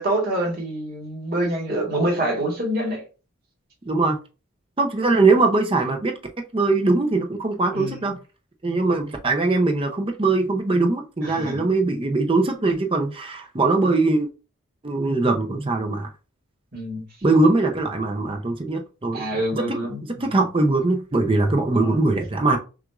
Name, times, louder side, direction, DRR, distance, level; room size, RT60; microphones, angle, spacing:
voice 1, 0.0-3.0 7.7-8.1 11.2-11.6 16.7-17.0 19.1-20.4 21.7-22.0, right 1 dB, 45° right, 1.5 m, -26 dB
voice 2, 3.9-4.2 4.8-6.2 6.5-8.2 8.6-14.3 14.8-16.1 17.2-19.2 19.5-19.8 20.2-22.6, right 3 dB, 25° right, 0.5 m, -21 dB
6.0 x 2.5 x 2.4 m
head